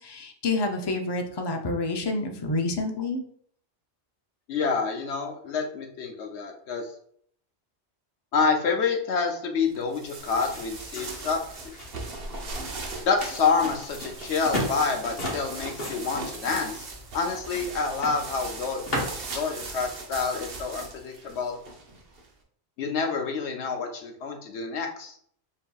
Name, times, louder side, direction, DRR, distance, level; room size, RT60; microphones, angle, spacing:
voice 1, 0.0-3.2, left 2 dB, 35° left, 3 dB, 0.4 m, -28 dB
voice 2, 4.5-6.9 8.3-11.6 13.1-18.8 19.3-21.6 22.8-25.1, left 5 dB, 75° left, 3 dB, 1.0 m, -28 dB
sound 1, 9.7-22.3, right 3 dB, 60° right, 0.9 m, -39 dB
sound 2, 10.2-19.4, left 1 dB, 60° left, 1.4 m, -37 dB
7.4 x 2.7 x 2.3 m, 0.63 s
omnidirectional pair, 1.1 m